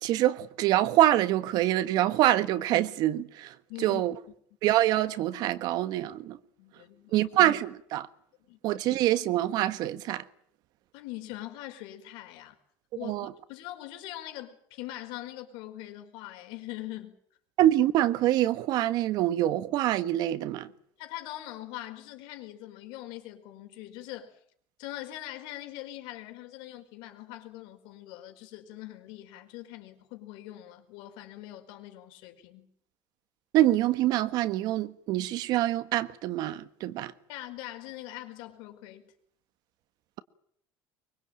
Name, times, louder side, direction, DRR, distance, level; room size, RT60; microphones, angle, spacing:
voice 1, 0.0-3.5 3.8-4.1 4.6-6.4 7.1-8.1 8.6-10.2 13.0-13.3 17.6-20.7 33.5-37.1, right 14 dB, 60° right, 1.5 m, -25 dB
voice 2, 3.7-4.0 6.6-7.3 8.5-8.6 10.9-12.6 12.9-17.1 21.0-24.3 24.8-32.7 37.3-39.1, left 15 dB, 80° left, 5.0 m, -42 dB
24.5 x 23.5 x 9.0 m
cardioid pair, 160°, 8 cm